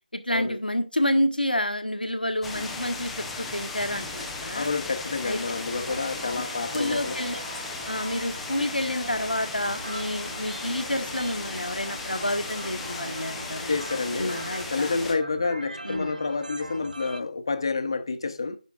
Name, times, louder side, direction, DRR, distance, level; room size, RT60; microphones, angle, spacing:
voice 1, 0.1-4.7 5.2-5.4 6.7-7.4 7.9-13.8 14.2-15.0 15.8-16.1, left 1 dB, 90° left, 1.5 m, -29 dB
sound 1, 2.4-15.1, left 3 dB, ahead, 0.4 m, -36 dB
voice 2, 4.5-7.2 13.7-14.4 14.7-18.6, left 4 dB, 35° left, 0.8 m, -29 dB
sound 2, 5.7-17.2, right 1 dB, 70° right, 1.0 m, -41 dB
10.5 x 6.1 x 2.4 m
figure-of-eight pair, 165°, 5 cm